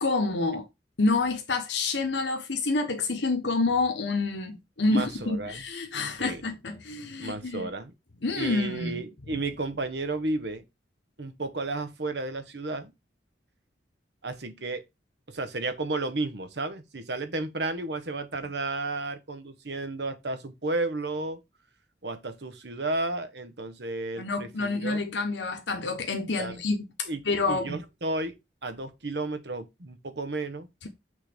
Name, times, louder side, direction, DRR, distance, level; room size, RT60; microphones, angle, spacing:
voice 1, 0.0-0.7 1.0-7.7 8.2-9.0 24.2-27.8, left 3 dB, 85° left, 1.1 m, -28 dB
voice 2, 4.9-5.6 6.2-6.4 7.2-7.9 8.3-10.6 11.2-12.9 14.2-14.8 15.3-21.4 22.0-25.0 26.4-26.6 27.1-28.3 28.6-30.7, right 2 dB, 70° right, 1.2 m, -33 dB
6.5 x 3.9 x 5.1 m
head